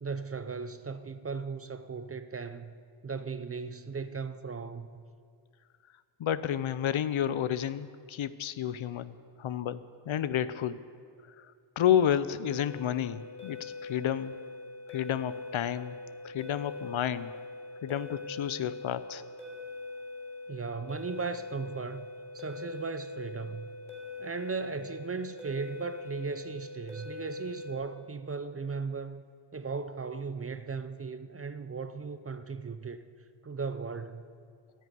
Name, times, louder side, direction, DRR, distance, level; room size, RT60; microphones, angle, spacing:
voice 1, 0.0-2.7 3.0-5.0 20.5-23.7 24.2-29.2 29.5-33.1 33.4-34.2, right 5 dB, 30° right, 11 dB, 0.5 m, -37 dB
voice 2, 6.2-10.8 11.4-11.5 11.8-14.4 14.9-16.0 16.2-17.3 17.8-19.2, left 10 dB, 70° left, 15 dB, 0.7 m, -30 dB
sound 1, 12.5-27.7, left 3 dB, 15° left, 3.2 m, -43 dB
13.0 x 10.0 x 9.3 m, 2.2 s
wide cardioid pair, 145°, 50 cm